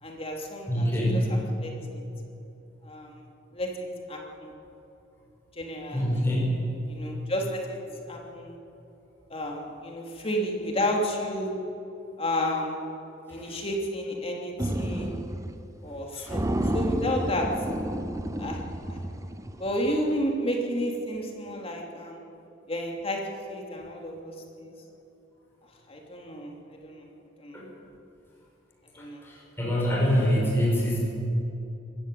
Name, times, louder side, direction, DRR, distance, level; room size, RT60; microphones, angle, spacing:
voice 1, 0.0-1.7 2.8-3.3 3.5-4.5 5.6-6.2 6.9-7.8 8.1-8.6 9.3-11.6 12.2-12.7 13.3-15.2 15.8-16.5 16.7-17.5 18.4-18.6 18.9-19.0 19.6-22.2 22.7-23.2 23.5-24.7 25.9-26.5 26.8-27.1 27.4-27.6 29.0-29.2, equal, 30° left, 0 dB, 3.0 m, -31 dB
voice 2, 0.7-1.3 5.9-6.5 16.2-16.3 27.5-27.6 29.6-31.0, equal, 10° left, -4 dB, 5.6 m, -24 dB
sound 1, 14.6-15.6 15.9-16.0 16.3-19.7, right 1 dB, 15° right, 0.8 m, -30 dB
23.5 x 14.0 x 9.2 m, 2.8 s
head